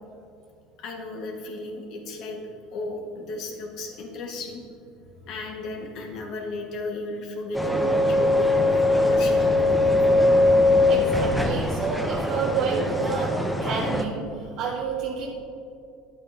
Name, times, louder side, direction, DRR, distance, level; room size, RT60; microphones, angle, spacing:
voice 1, 0.8-2.4 2.7-4.6 5.2-10.2, left 2 dB, 60° left, 1 dB, 1.5 m, -35 dB
sound 1, 7.5-14.0, left 2 dB, 5° left, 0.7 m, -21 dB
voice 2, 10.9-13.3 13.6-15.3, right 5 dB, 60° right, -3 dB, 1.0 m, -29 dB
10.0 x 8.3 x 2.8 m, 2.6 s
supercardioid pair, 95°, 0 cm